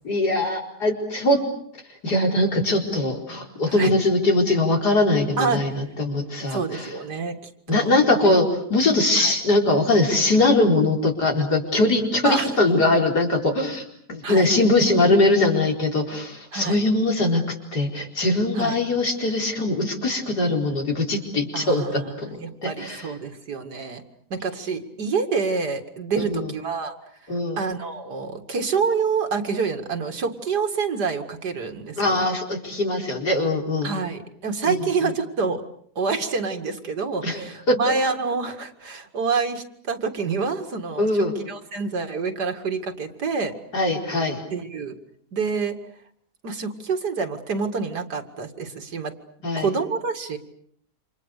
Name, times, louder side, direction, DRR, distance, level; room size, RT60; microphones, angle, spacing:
voice 1, 0.0-1.4 2.0-6.9 7.7-23.1 26.2-26.5 27.3-27.6 32.0-34.0 34.6-35.1 37.2-37.8 41.0-41.3 43.7-44.4 49.4-49.7, left 2 dB, 75° left, 2 dB, 5.0 m, -22 dB
voice 2, 5.4-5.8 6.5-7.4 7.7-7.9 8.2-8.3 9.2-9.3 12.2-12.5 14.2-14.5 16.5-16.7 18.6-18.7 21.5-24.0 24.3-26.9 27.6-32.2 33.8-35.6 36.0-43.5 44.5-44.9 45.3-45.8 46.4-49.1 49.6-50.4, right 5 dB, 80° right, 7 dB, 2.7 m, -27 dB
29.0 x 27.0 x 6.7 m, 0.65 s
omnidirectional pair, 1.7 m